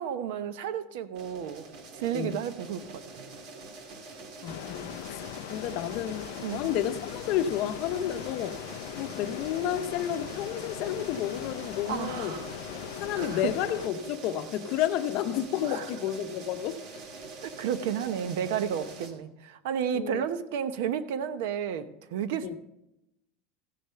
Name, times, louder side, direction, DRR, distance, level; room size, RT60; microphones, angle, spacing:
voice 1, 0.0-1.6 1.9-3.2 6.4-6.6 11.9-12.5 13.1-13.4 15.7-15.8 17.4-22.5, right 8 dB, 70° right, 0.9 m, -32 dB
sound 1, 1.1-19.1, right 3 dB, 55° right, 2.3 m, -44 dB
voice 2, 4.4-8.6 9.0-12.4 13.0-16.8 19.9-20.2 22.4-22.5, left 10 dB, 45° left, 0.7 m, -31 dB
sound 2, 4.5-13.9, left 14 dB, 70° left, 0.3 m, -40 dB
15.5 x 6.7 x 5.7 m
supercardioid pair, 170°, 0 cm